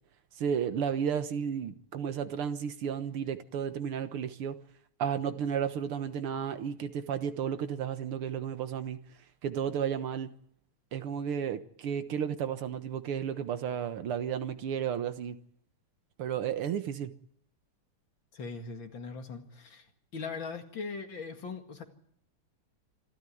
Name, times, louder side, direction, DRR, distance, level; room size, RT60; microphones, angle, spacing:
voice 1, 0.4-4.6 5.0-9.0 9.4-10.3 10.9-15.4 16.2-17.1, right 8 dB, 80° right, 2.1 m, -33 dB
voice 2, 18.3-19.9 20.1-21.8, left 4 dB, 60° left, 2.8 m, -40 dB
26.5 x 13.5 x 9.3 m
omnidirectional pair, 2.4 m